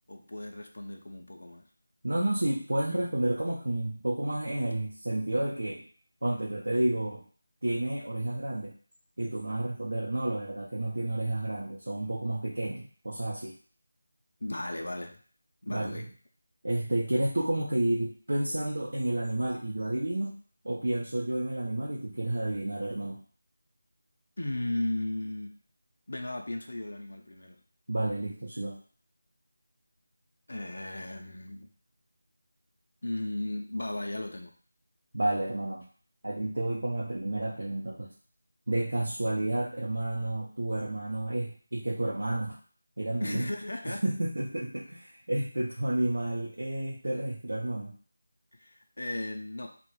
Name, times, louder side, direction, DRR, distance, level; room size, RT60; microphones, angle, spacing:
voice 1, 0.1-1.7 14.4-15.2 15.6-16.1 24.4-25.6 26.1-27.6 30.5-31.7 33.0-34.5 43.2-44.0 48.5-49.8, left 1 dB, 60° left, 3 dB, 0.4 m, -35 dB
voice 2, 2.0-5.8 6.2-7.2 7.6-8.7 9.2-13.5 15.7-16.1 16.6-20.4 20.6-23.2 27.9-28.8 35.1-35.9 36.2-38.1 38.7-42.6 43.0-43.5 43.9-47.9, right 1 dB, 90° right, -4 dB, 0.5 m, -30 dB
2.3 x 2.0 x 3.0 m, 0.43 s
figure-of-eight pair, 180°, 0 cm